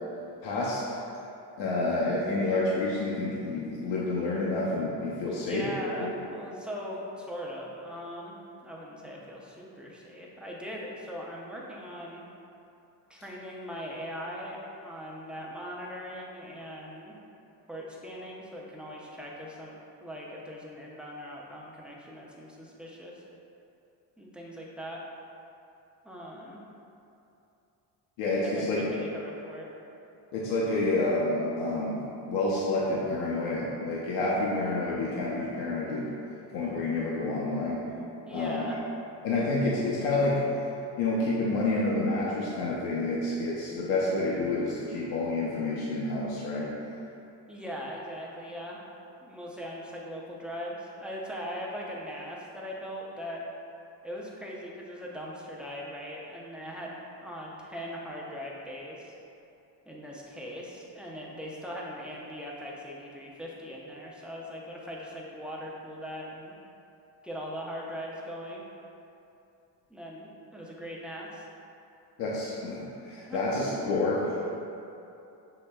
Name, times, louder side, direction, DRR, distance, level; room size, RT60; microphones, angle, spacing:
voice 1, 0.4-1.0 1.6-5.7 6.0-6.1 28.2-28.9 30.3-32.0 32.3-36.1 36.5-37.8 38.3-38.6 39.2-40.4 41.0-46.7 72.2-74.6, left 2 dB, 85° left, -5 dB, 0.7 m, -29 dB
voice 2, 5.3-8.4 8.6-12.2 13.1-17.1 17.7-23.1 24.2-25.0 26.0-26.6 28.4-29.7 38.3-38.8 47.5-48.8 49.2-53.4 54.0-59.1 59.9-66.5 67.2-68.6 69.9-71.5 73.3-73.4, equal, 5° right, -4 dB, 0.4 m, -40 dB
6.6 x 3.1 x 2.2 m, 2.8 s
cardioid pair, 125°, 44 cm